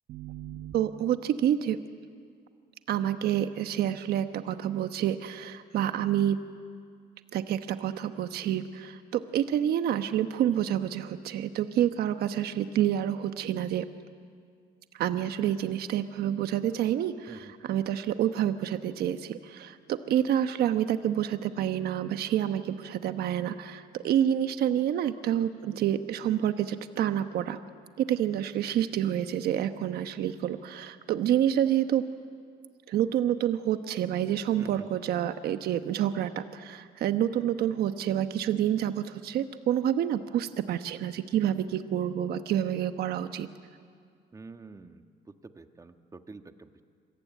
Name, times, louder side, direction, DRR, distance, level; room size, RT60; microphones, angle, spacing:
voice 1, 0.1-1.8 2.9-6.4 7.3-13.8 14.9-27.6 28.0-32.0 32.9-43.5, right 10 dB, 70° right, 9 dB, 1.2 m, -28 dB
voice 2, 44.3-46.8, right 3 dB, 20° right, 7 dB, 1.5 m, -48 dB
26.5 x 22.5 x 9.3 m, 2.1 s
cardioid pair, 110°, 17 cm